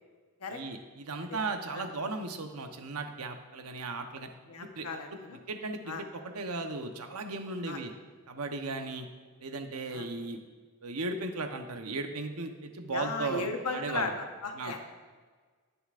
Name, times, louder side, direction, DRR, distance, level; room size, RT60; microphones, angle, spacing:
voice 1, 0.5-4.3 4.6-4.9 5.5-7.9 8.3-9.1 9.4-10.4 10.8-14.1 14.5-14.8, right 3 dB, 75° right, 5 dB, 1.0 m, -36 dB
voice 2, 4.5-5.4 5.9-6.0 7.7-7.8 9.9-10.1 12.9-14.1 14.4-14.9, left 3 dB, 75° left, 4 dB, 1.1 m, -36 dB
18.5 x 6.9 x 2.5 m, 1.5 s
head